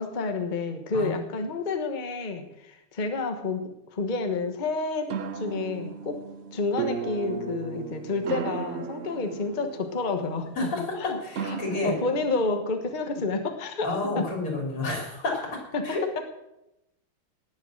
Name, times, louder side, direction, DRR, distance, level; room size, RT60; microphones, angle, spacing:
voice 1, 0.0-6.2 6.5-10.5 11.0-11.2 11.4-13.9 14.1-14.3 15.7-15.8 16.2-16.3, left 3 dB, 25° left, 6 dB, 1.1 m, -29 dB
sound 1, 5.1-12.6, right 6 dB, 70° right, 0.7 m, -36 dB
voice 2, 11.2-11.9 13.8-15.4 15.8-16.2, left 2 dB, 85° left, 0 dB, 4.2 m, -30 dB
18.5 x 7.2 x 6.5 m, 0.89 s
omnidirectional pair, 2.3 m